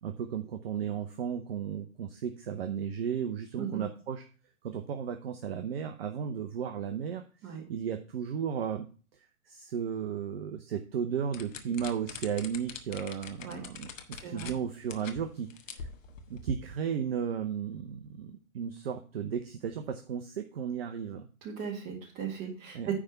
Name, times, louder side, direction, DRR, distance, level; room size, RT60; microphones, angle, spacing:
voice 1, 0.0-4.2 4.6-8.9 9.5-13.9 14.2-15.5 15.7-15.9 16.3-21.3 22.7-22.9, right 7 dB, 45° right, 6 dB, 0.9 m, -34 dB
sound 1, 11.3-14.6 14.9-15.2 15.5-16.4, left 6 dB, 65° left, 1.3 m, -43 dB
voice 2, 21.4-22.9, right 7 dB, 25° right, 2 dB, 2.2 m, -37 dB
9.7 x 3.6 x 6.6 m, 0.37 s
figure-of-eight pair, 130°, 43 cm